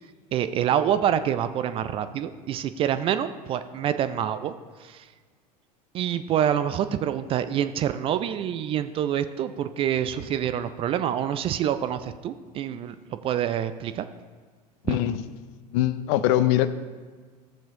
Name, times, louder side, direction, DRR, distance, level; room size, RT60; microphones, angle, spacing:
voice 1, 0.3-4.5 4.8-5.1 5.9-14.0 14.9-15.0, right 10 dB, 25° right, 12 dB, 0.3 m, -26 dB
voice 2, 14.8-15.2 15.7-16.7, left 13 dB, 45° left, 14 dB, 0.5 m, -22 dB
14.5 x 7.2 x 2.7 m, 1.5 s
figure-of-eight pair, 80°, 21 cm